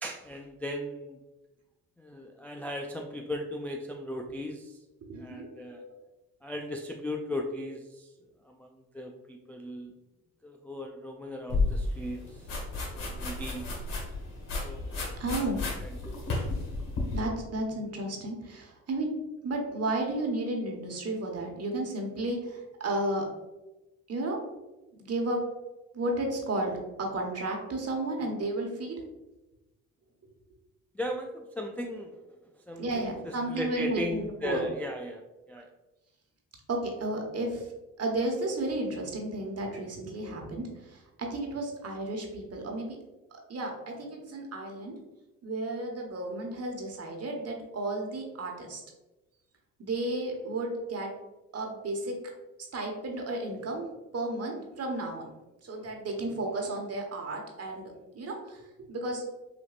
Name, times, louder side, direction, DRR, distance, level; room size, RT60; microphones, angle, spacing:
voice 1, 0.0-1.2 2.0-4.8 5.2-5.8 6.4-8.1 8.4-9.9 10.4-13.7 14.6-15.1 15.5-16.2 30.9-32.2 32.7-35.2 35.5-35.7, left 1 dB, 5° left, 2 dB, 0.3 m, -37 dB
voice 2, 5.1-5.9 15.2-15.6 17.1-19.1 19.4-23.3 24.1-24.4 24.9-25.4 25.9-26.7 27.0-29.0 32.8-34.6 36.7-37.6 38.0-42.9 43.5-45.0 45.4-48.8 49.8-51.1 51.5-52.2 52.7-53.9 54.1-55.3 55.6-58.6 58.9-59.2, right 2 dB, 40° right, 1 dB, 1.3 m, -33 dB
sound 1, 11.5-17.2, left 3 dB, 60° left, 1.5 m, -32 dB
5.9 x 2.6 x 2.4 m, 1.0 s
supercardioid pair, 60°, 37 cm